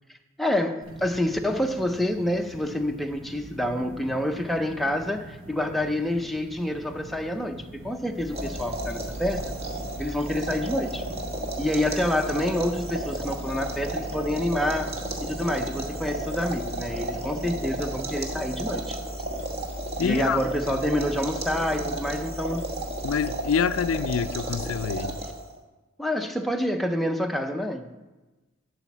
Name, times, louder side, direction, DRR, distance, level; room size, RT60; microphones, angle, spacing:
voice 1, 0.4-9.6 10.0-11.0 11.6-14.9 15.2-19.0 20.0-22.7 26.0-27.9, left 1 dB, ahead, 4 dB, 0.5 m, -27 dB
sound 1, 0.8-18.0, right 1 dB, 65° right, 1.1 m, -44 dB
sound 2, 8.2-25.6, right 1 dB, 30° right, 1.1 m, -33 dB
voice 2, 20.0-20.4 23.0-25.2, left 6 dB, 75° left, 14 dB, 0.4 m, -26 dB
11.0 x 4.2 x 7.2 m, 1.2 s
head